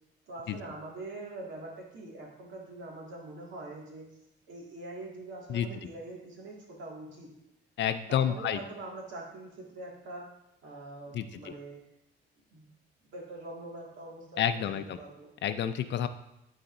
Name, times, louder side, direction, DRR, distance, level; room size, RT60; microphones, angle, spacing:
voice 1, 0.3-4.1 4.5-7.3 8.1-10.2 10.6-11.8 12.5-12.7 13.0-15.3, right 2 dB, 75° right, -3 dB, 2.1 m, -44 dB
voice 2, 7.8-8.6 11.1-11.3 14.4-15.0 15.4-16.1, left 9 dB, 65° left, 11 dB, 0.5 m, -29 dB
11.5 x 4.0 x 2.6 m, 0.86 s
cardioid pair, 90°, 20 cm